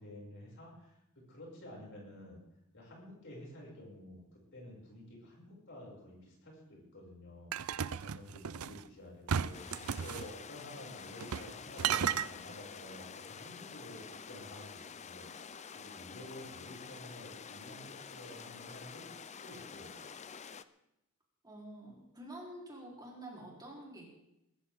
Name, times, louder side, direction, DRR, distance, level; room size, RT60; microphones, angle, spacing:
voice 1, 0.0-2.4 2.7-7.5 7.9-19.0 19.4-19.9, left 1 dB, 60° left, -3 dB, 6.6 m, -51 dB
sound 1, 7.5-8.8 9.3-10.3 11.2-11.5 11.8-12.3, right 8 dB, 70° right, 0.5 m, -34 dB
sound 2, 9.5-20.6, left 6 dB, 30° left, 0.5 m, -48 dB
voice 2, 21.4-24.0, right 1 dB, 20° right, -3 dB, 3.9 m, -48 dB
22.0 x 14.0 x 3.7 m, 0.87 s
head